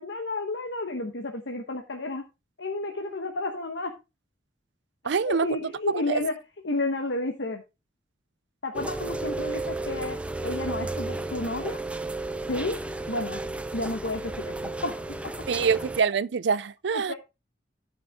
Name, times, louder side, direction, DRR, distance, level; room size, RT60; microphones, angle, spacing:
voice 1, 0.0-2.2 2.6-3.9 5.2-6.4 6.6-7.6 8.6-11.8 12.5-12.8 13.1-13.4 13.7-15.4 16.9-17.1, left 2 dB, 75° left, 1.1 m, -31 dB
voice 2, 5.0-5.5 6.1-6.2 15.5-17.1, right 5 dB, 70° right, 0.4 m, -25 dB
Rain, 8.7-16.0, right 2 dB, 5° right, 0.6 m, -33 dB
14.0 x 5.8 x 3.5 m
head